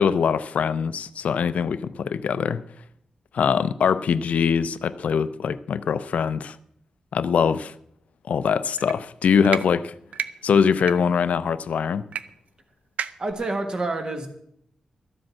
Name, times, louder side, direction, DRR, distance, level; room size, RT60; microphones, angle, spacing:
voice 1, 0.0-2.6 3.3-6.6 7.1-7.8 8.2-9.9 10.4-12.1, left 6 dB, 75° left, 0.5 m, -22 dB
sound 1, 8.8-9.0 9.4-9.6 10.1-10.3 10.8-10.9 12.1-12.2 12.5-12.6 13.0-13.3, right 7 dB, 85° right, 0.6 m, -29 dB
voice 2, 13.2-14.3, right 2 dB, 35° right, 1.6 m, -27 dB
13.0 x 7.7 x 7.3 m
wide cardioid pair, 175°, 2 cm